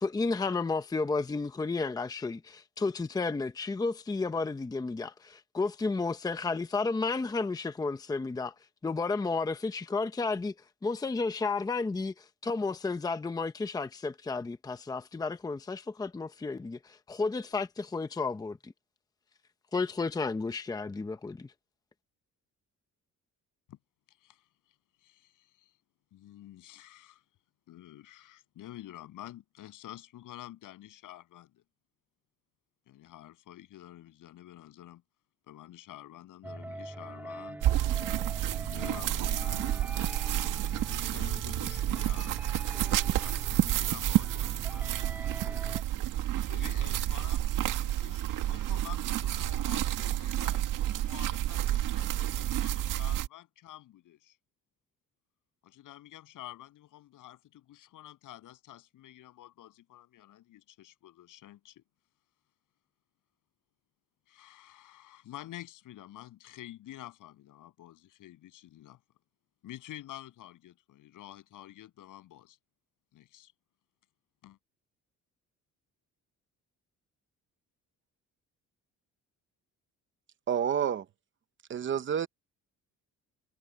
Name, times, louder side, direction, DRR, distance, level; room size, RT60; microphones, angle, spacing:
voice 1, 0.0-8.5 8.8-10.5 10.8-18.7 19.7-21.5, left 3 dB, 10° left, 0.7 m, -32 dB
voice 2, 24.1-24.5 25.0-25.7 26.1-27.2 27.7-31.6 32.9-35.0 35.5-37.6 38.4-39.7 40.2-42.3 43.2-45.2 46.5-54.4 55.6-61.8 64.3-69.0 69.6-72.6 74.4-74.6, left 14 dB, 80° left, 7.7 m, -49 dB
sound 1, 36.4-45.8, right 1 dB, 5° right, 2.9 m, -44 dB
sound 2, 37.6-53.3, right 13 dB, 90° right, 1.9 m, -30 dB
voice 3, 80.5-81.0 81.7-82.3, right 8 dB, 40° right, 0.8 m, -29 dB
cardioid pair, 160°, 31 cm